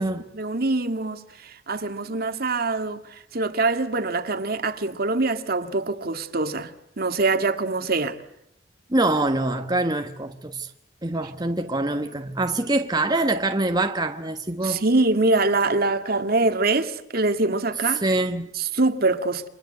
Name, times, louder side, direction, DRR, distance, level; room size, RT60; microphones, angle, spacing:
voice 1, 0.3-3.0 3.3-6.7 7.0-8.2 14.6-18.0 18.6-19.5, right 3 dB, 55° right, 2.0 m, -24 dB
voice 2, 8.9-10.7 11.0-14.8 18.0-18.5, right 2 dB, 20° right, 1.3 m, -24 dB
29.0 x 26.0 x 7.9 m
head